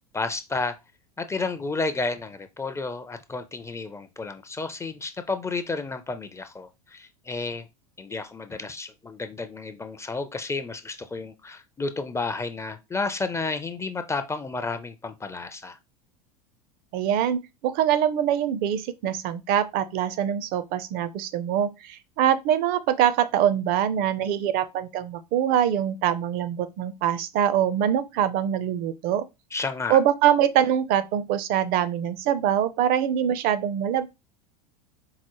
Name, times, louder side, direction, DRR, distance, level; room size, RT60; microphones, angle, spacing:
voice 1, 0.1-0.8 1.2-7.7 8.0-15.8 29.5-30.0, left 3 dB, 15° left, 0.4 m, -31 dB
voice 2, 16.9-29.3 29.9-34.1, right 10 dB, 50° right, 0.5 m, -24 dB
4.7 x 2.0 x 2.9 m
hypercardioid pair, 90°, 20 cm